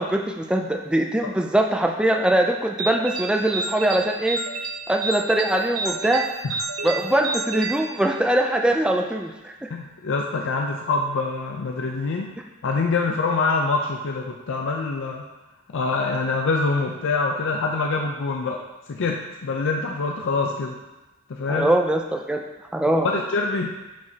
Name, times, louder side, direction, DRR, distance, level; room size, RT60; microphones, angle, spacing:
voice 1, 0.0-4.4 4.9-6.3 6.8-9.7 21.5-22.4 22.7-23.1, right 1 dB, 5° right, 2 dB, 0.3 m, -22 dB
sound 1, 2.8-8.5, right 3 dB, 85° right, 0.5 m, -31 dB
voice 2, 9.7-12.3 12.6-15.2 15.7-18.6 18.9-20.8 21.3-21.7 22.9-23.7, left 3 dB, 65° left, 1 dB, 0.5 m, -25 dB
7.3 x 4.9 x 2.8 m, 1.1 s
head